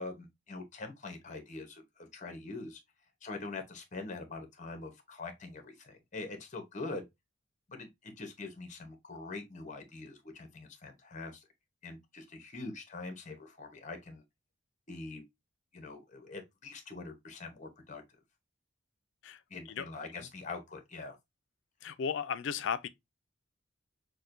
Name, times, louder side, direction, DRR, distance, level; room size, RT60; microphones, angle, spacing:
voice 1, 0.0-2.8 3.2-7.0 7.7-11.4 11.8-14.2 14.9-15.2 15.7-18.0 19.5-21.2, left 3 dB, 40° left, 0.9 m, -44 dB
voice 2, 19.2-19.9 20.1-20.3 21.8-22.9, left 7 dB, 65° left, 0.3 m, -36 dB
6.2 x 2.2 x 2.5 m
head